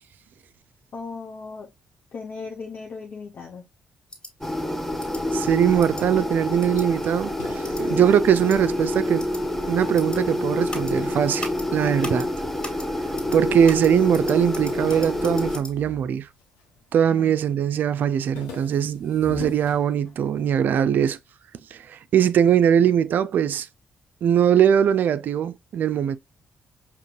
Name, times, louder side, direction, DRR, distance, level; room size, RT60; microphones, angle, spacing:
voice 1, 0.9-1.7 2.1-3.7 7.7-8.1 17.1-17.3, left 4 dB, 60° left, 0.9 m, -37 dB
sound 1, 4.1-4.3 5.0-5.2 5.8-6.0 6.6-6.9 7.6-7.8 8.3-8.6 9.2-9.4 10.0-10.2 10.7-10.9 11.4-11.7 12.0-12.3 12.6-12.9 13.2-13.4 13.7-15.7, left 1 dB, 30° left, 2.2 m, -38 dB
sound 2, 4.4-15.6, left 1 dB, 10° left, 0.8 m, -27 dB
voice 2, 5.3-9.3 9.7-12.3 13.3-16.3 16.9-21.2 21.7-23.7 24.2-26.2, right 9 dB, 60° right, 0.4 m, -21 dB
sound 3, 6.9-9.4 9.8-12.3 12.9-13.6 13.8-13.9 14.2-16.8 17.2-17.6 17.9-20.5, left 5 dB, 85° left, 1.0 m, -43 dB
5.1 x 3.0 x 2.5 m
supercardioid pair, 60°, 3 cm